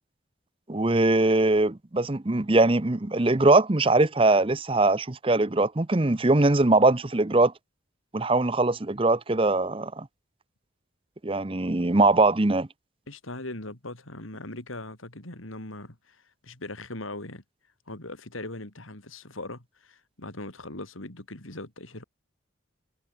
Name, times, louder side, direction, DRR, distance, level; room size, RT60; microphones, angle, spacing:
voice 1, 0.7-7.5 8.1-10.1 11.2-12.7, right 2 dB, 25° right, 0.7 m, -22 dB
voice 2, 13.1-17.4 17.9-22.0, left 2 dB, 90° left, 4.2 m, -40 dB
head